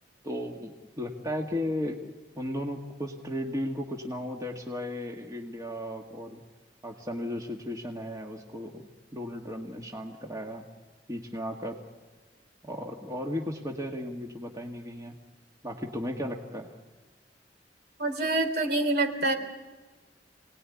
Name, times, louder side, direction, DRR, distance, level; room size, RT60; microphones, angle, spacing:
voice 1, 0.2-2.0 2.4-6.4 6.8-8.8 9.1-10.7 11.1-11.8 12.6-15.1 15.6-16.7, left 1 dB, 20° right, 1 dB, 1.9 m, -35 dB
voice 2, 18.0-19.3, right 2 dB, 60° right, 6 dB, 2.9 m, -26 dB
29.5 x 19.5 x 9.7 m, 1.3 s
head